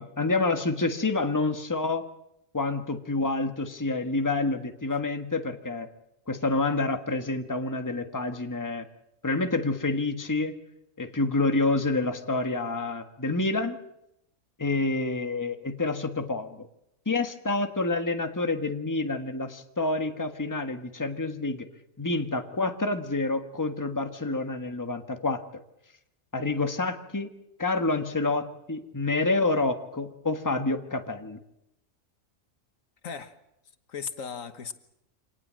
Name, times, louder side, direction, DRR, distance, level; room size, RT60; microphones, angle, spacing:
voice 1, 0.0-2.1 2.5-5.9 6.3-8.9 9.2-10.6 11.0-13.8 14.6-16.7 17.0-21.7 22.0-25.4 26.3-27.3 27.6-31.4, left 3 dB, 15° left, 7 dB, 1.5 m, -28 dB
voice 2, 33.0-33.4 33.9-34.7, left 6 dB, 75° left, 10 dB, 1.7 m, -37 dB
26.5 x 19.0 x 7.6 m, 0.83 s
omnidirectional pair, 1.4 m